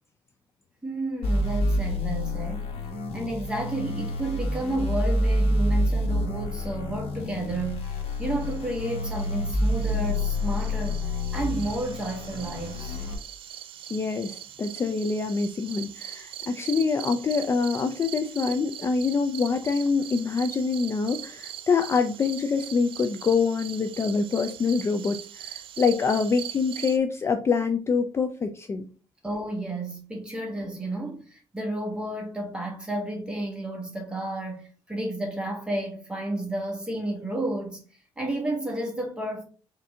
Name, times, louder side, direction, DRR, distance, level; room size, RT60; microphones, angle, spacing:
voice 1, 0.8-2.7 3.1-13.0 29.2-39.4, right 1 dB, 10° right, 1.4 m, -31 dB
sound 1, 1.2-13.1, left 1 dB, 80° left, 1.3 m, -28 dB
sound 2, 8.1-27.0, right 11 dB, 60° right, 0.4 m, -41 dB
voice 2, 13.9-28.8, left 5 dB, 25° left, 0.3 m, -25 dB
4.2 x 2.6 x 3.4 m
cardioid pair, 120°, 10 cm